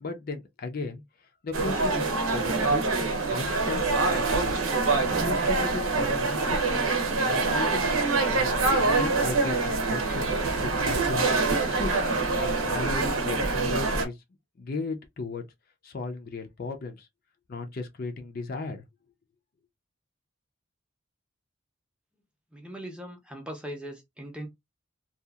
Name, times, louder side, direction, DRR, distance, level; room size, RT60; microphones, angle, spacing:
voice 1, 0.0-2.9 3.3-4.6 5.1-6.6 7.2-7.9 8.3-10.3 10.6-11.3 11.6-11.9 12.4-14.2 14.6-15.4 15.8-17.1 17.5-18.8, left 3 dB, 45° left, 0.4 m, -36 dB
sound 1, 1.5-14.1, right 3 dB, 75° right, 0.7 m, -25 dB
voice 2, 22.5-24.5, equal, 5° right, 0.6 m, -39 dB
2.7 x 2.4 x 2.3 m
head